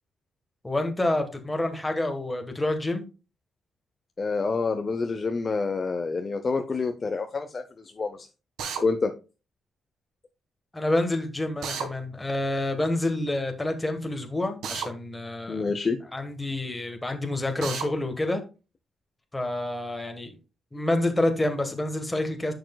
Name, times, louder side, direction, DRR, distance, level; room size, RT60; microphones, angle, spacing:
voice 1, 0.6-3.1 10.7-15.6 16.1-18.4 19.3-20.3 20.7-22.5, left 1 dB, 10° left, 5 dB, 1.3 m, -28 dB
voice 2, 4.2-8.3 8.8-9.1 15.5-16.0, left 4 dB, 25° left, 7 dB, 0.6 m, -27 dB
Drill, 8.6-8.8 11.6-11.9 14.6-14.9 17.6-17.9, right 6 dB, 85° right, 1.6 m, -31 dB
10.5 x 6.7 x 2.3 m, 0.31 s
wide cardioid pair, 175°, 0 cm